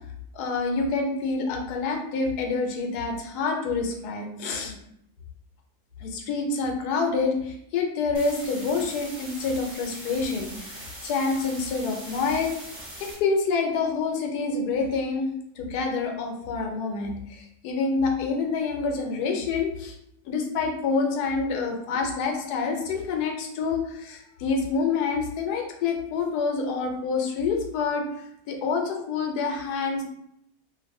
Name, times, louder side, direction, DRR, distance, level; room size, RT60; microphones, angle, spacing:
voice 1, 0.3-4.8 6.0-12.5 13.0-15.3 15.6-20.0 20.2-30.0, left 4 dB, 80° left, 3 dB, 1.1 m, -27 dB
sound 1, 8.1-13.1, right 1 dB, 35° right, 0.9 m, -41 dB
2.5 x 2.5 x 2.6 m, 0.74 s
omnidirectional pair, 1.7 m